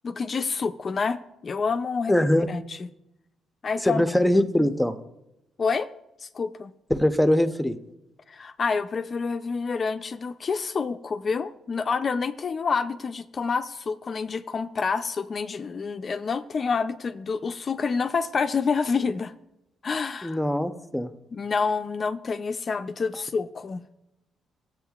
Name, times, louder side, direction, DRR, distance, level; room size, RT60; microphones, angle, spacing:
voice 1, 0.0-2.1 2.5-2.9 3.6-4.0 5.6-5.9 6.2-6.7 8.3-19.3 19.8-20.4 21.3-24.0, left 5 dB, 40° left, 10 dB, 0.4 m, -28 dB
voice 2, 2.1-2.5 3.8-4.9 6.9-7.7 20.2-21.1, left 1 dB, 5° left, 9 dB, 0.7 m, -22 dB
14.5 x 7.9 x 2.4 m, 0.89 s
cardioid pair, 90°, 0 cm